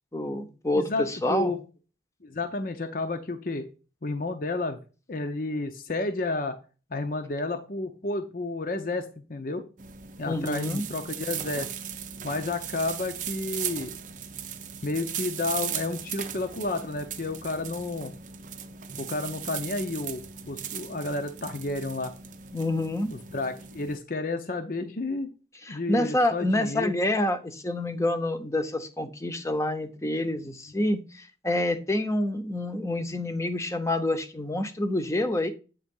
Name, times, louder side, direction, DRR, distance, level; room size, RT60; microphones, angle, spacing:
voice 1, 0.1-1.5 10.2-10.8 22.5-23.1 25.6-35.5, left 1 dB, 15° left, 7 dB, 0.8 m, -27 dB
voice 2, 0.7-1.6 2.2-3.7 4.0-4.8 5.1-6.5 6.9-9.6 10.2-11.7 12.2-13.9 14.8-18.1 19.0-22.1 23.1-25.3 25.7-26.9, left 2 dB, 50° left, 6 dB, 0.7 m, -31 dB
sound 1, 9.8-24.0, right 8 dB, 45° right, 0.6 m, -38 dB
8.6 x 3.7 x 5.3 m, 0.33 s
head